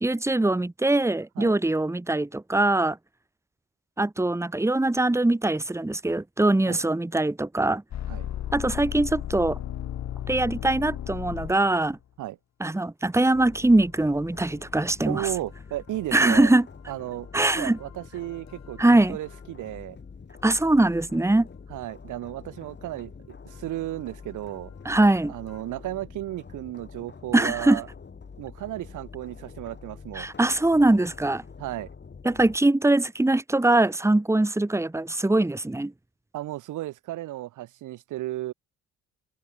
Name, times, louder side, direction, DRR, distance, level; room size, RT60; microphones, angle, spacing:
voice 1, 0.0-3.0 4.0-7.8 8.5-9.6 10.3-12.0 12.6-15.3 16.1-16.7 17.3-17.8 18.8-19.2 20.4-21.5 24.9-25.3 27.3-27.8 30.2-31.4 32.2-35.9, right 2 dB, 10° right, 2.0 m, -22 dB
sound 1, 7.9-11.9 17.5-19.0 19.2-19.4 25.5-25.6, left 10 dB, 65° left, 2.3 m, -35 dB
sound 2, 13.3-32.6, left 5 dB, 35° left, 7.0 m, -46 dB
voice 2, 15.1-16.5 16.9-20.0 21.7-24.7 25.3-27.9 28.4-30.3 31.6-31.9 36.3-38.5, right 15 dB, 85° right, 3.5 m, -34 dB
cardioid pair, 90°, 30 cm